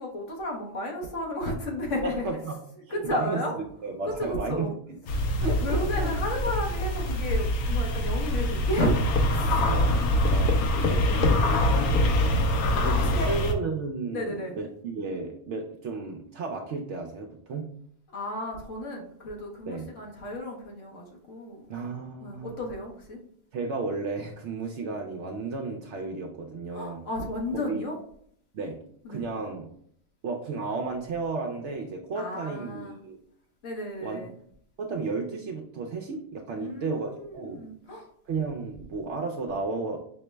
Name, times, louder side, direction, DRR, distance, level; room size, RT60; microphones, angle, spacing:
voice 1, 0.0-2.2 2.9-3.6 4.1-4.7 5.6-10.1 10.9-11.3 11.8-12.1 12.9-13.3 14.1-14.5 18.1-21.8 22.2-23.2 26.7-28.0 29.0-29.2 32.1-33.0 33.6-34.3 36.5-38.1, left 1 dB, 60° left, -1 dB, 1.2 m, -33 dB
voice 2, 2.0-2.6 2.9-3.4 3.8-4.7 5.1-6.2 9.5-10.7 11.7-12.1 12.8-17.7 19.7-19.9 21.7-22.6 23.5-27.0 27.6-27.8 28.5-28.8 29.1-29.7 30.2-33.2 34.0-34.3 34.8-37.7 37.9-40.0, right 4 dB, 65° right, 1 dB, 0.7 m, -33 dB
sound 1, 5.1-13.5, left 1 dB, 80° left, 1.1 m, -24 dB
5.4 x 2.0 x 3.2 m, 0.66 s
omnidirectional pair, 1.5 m